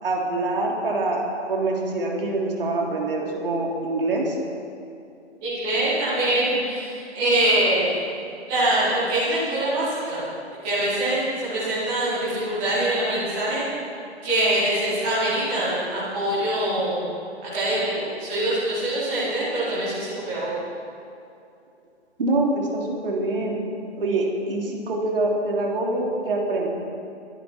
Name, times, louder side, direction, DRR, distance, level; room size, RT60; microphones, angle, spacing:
voice 1, 0.0-4.4 22.2-23.6 24.0-26.7, right 2 dB, 55° right, -1 dB, 3.5 m, -25 dB
voice 2, 5.4-8.0 8.5-10.2 10.6-13.6 14.2-17.0 17.5-20.6, right 1 dB, ahead, -12 dB, 0.4 m, -24 dB
22.5 x 11.0 x 4.5 m, 2.5 s
figure-of-eight pair, 140°, 34 cm